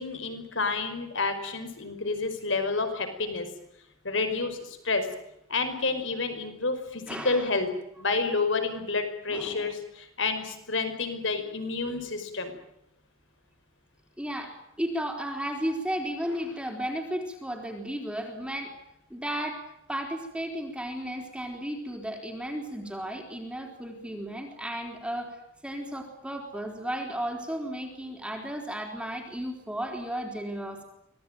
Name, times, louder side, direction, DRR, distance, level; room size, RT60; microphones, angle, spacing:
voice 1, 0.0-3.5 4.0-5.1 5.5-7.7 8.0-12.5, left 3 dB, 65° left, 8 dB, 5.2 m, -29 dB
voice 2, 7.1-7.5 9.3-9.8 14.2-18.7 19.1-19.6 19.9-25.4 25.6-30.8, equal, 5° right, 2 dB, 4.1 m, -34 dB
25.5 x 20.0 x 9.1 m, 0.81 s
head